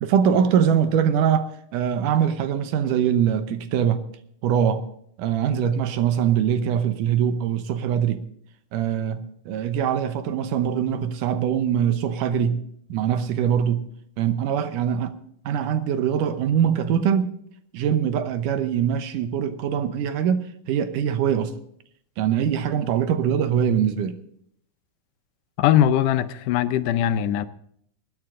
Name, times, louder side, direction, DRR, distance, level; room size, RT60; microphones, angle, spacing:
voice 1, 0.0-4.0 4.4-4.8 5.2-8.2 8.7-12.6 12.9-13.8 14.2-15.1 15.5-17.3 17.7-21.5 22.2-24.2, right 8 dB, 85° right, 2.5 m, -23 dB
voice 2, 25.6-27.5, left 10 dB, 85° left, 2.3 m, -20 dB
24.0 x 9.6 x 3.7 m
omnidirectional pair, 3.6 m